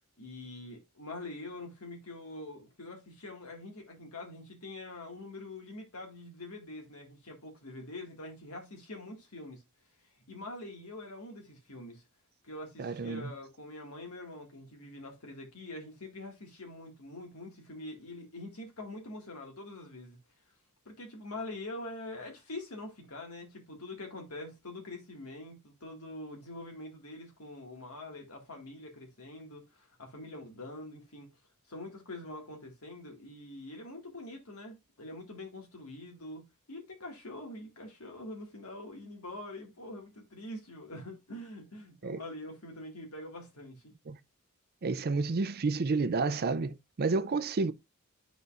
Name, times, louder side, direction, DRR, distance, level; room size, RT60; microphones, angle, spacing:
voice 1, 0.2-9.6 10.3-12.0 12.4-20.2 20.9-31.3 31.7-43.9, left 2 dB, 85° left, 2.0 m, -44 dB
voice 2, 12.8-13.3 42.0-42.2 44.1-44.2 44.8-47.7, right 3 dB, 45° right, 0.5 m, -30 dB
11.0 x 4.0 x 2.5 m
head